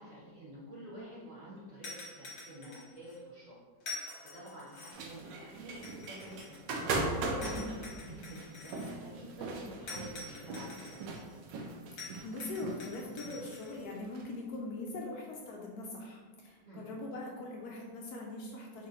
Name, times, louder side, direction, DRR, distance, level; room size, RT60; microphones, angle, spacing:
voice 1, 0.0-3.5 4.2-6.5 7.0-11.0 16.6-16.9, equal, 50° right, -8 dB, 1.1 m, -48 dB
sound 1, 1.8-3.2 3.8-5.1 5.8-6.9 7.4-8.9 9.9-11.2 12.0-13.7, left 3 dB, 55° left, 1.4 m, -47 dB
sound 2, 4.9-14.3, right 3 dB, 75° right, 1.2 m, -39 dB
voice 2, 7.4-7.7 12.0-18.9, left 2 dB, 75° left, -1 dB, 0.9 m, -42 dB
3.8 x 2.9 x 3.9 m, 1.4 s
omnidirectional pair, 2.2 m